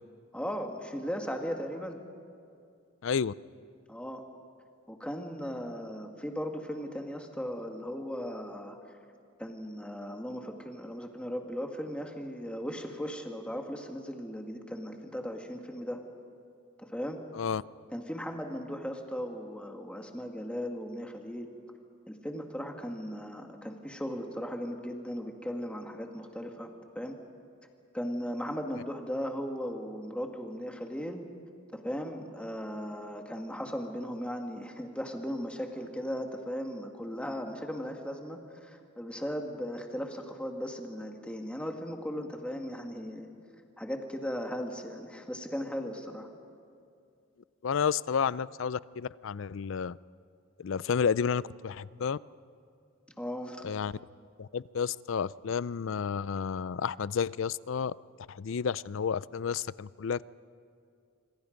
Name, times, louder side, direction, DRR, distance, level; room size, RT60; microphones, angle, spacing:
voice 1, 0.3-2.0 3.9-4.2 4.9-8.8 9.4-16.0 16.8-17.2 17.9-21.5 22.1-27.2 27.9-31.3 31.7-43.3 43.8-46.3 53.2-53.6, equal, 5° left, 3 dB, 1.9 m, -37 dB
voice 2, 3.0-3.3 17.3-17.6 47.6-50.0 50.6-52.2 53.6-53.9 54.4-57.9 58.3-60.2, left 6 dB, 70° left, 20 dB, 0.4 m, -31 dB
26.5 x 24.5 x 5.2 m, 2.4 s
head